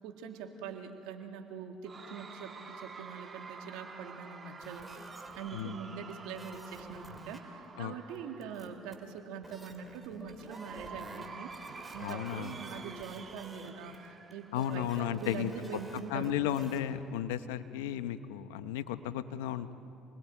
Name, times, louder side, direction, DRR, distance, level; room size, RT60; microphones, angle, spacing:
voice 1, 0.0-11.6 11.9-16.4, right 6 dB, 80° right, 4 dB, 2.0 m, -43 dB
Cheering / Crowd, 1.8-9.2 10.4-15.2, right 4 dB, 35° right, 1.6 m, -48 dB
sound 1, 4.6-5.6 6.1-7.4 8.1-9.2 9.4-14.1 14.3-14.4 14.6-16.8, right 1 dB, 10° right, 3.0 m, -52 dB
voice 2, 12.0-12.6 14.5-15.5 16.1-19.7, left 11 dB, 85° left, 12 dB, 0.8 m, -34 dB
28.0 x 20.5 x 4.6 m, 2.8 s
supercardioid pair, 75°, 0 cm